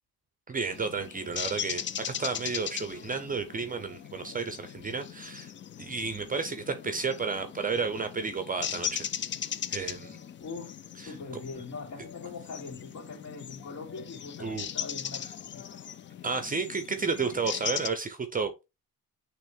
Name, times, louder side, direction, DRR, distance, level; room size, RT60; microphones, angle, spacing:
voice 1, 0.5-5.5 5.8-9.1 9.7-10.2 11.0-11.2 14.4-14.7 16.2-18.7, right 4 dB, 25° right, 0.6 m, -32 dB
sound 1, 0.7-17.9, left 9 dB, 35° left, 0.4 m, -39 dB
voice 2, 10.4-10.7 11.0-15.2 15.5-15.8, left 4 dB, 55° left, 2.8 m, -41 dB
9.0 x 3.1 x 3.5 m
cardioid pair, 160°, 35 cm